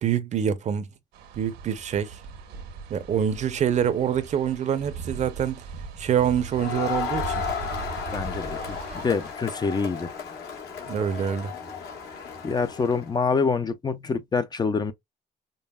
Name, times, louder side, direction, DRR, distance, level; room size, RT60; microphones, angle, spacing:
voice 1, 0.0-0.9 1.3-2.2 2.9-5.6 6.0-7.4 10.9-11.5, right 8 dB, 45° right, 0.7 m, -25 dB
sound 1, 1.1-9.3, right 4 dB, 85° right, 1.3 m, -39 dB
Crowd, 6.5-13.1, left 6 dB, 70° left, 1.5 m, -34 dB
voice 2, 8.1-10.1 12.4-14.9, left 5 dB, 25° left, 0.5 m, -26 dB
5.3 x 2.3 x 2.2 m
cardioid pair, 110°, 17 cm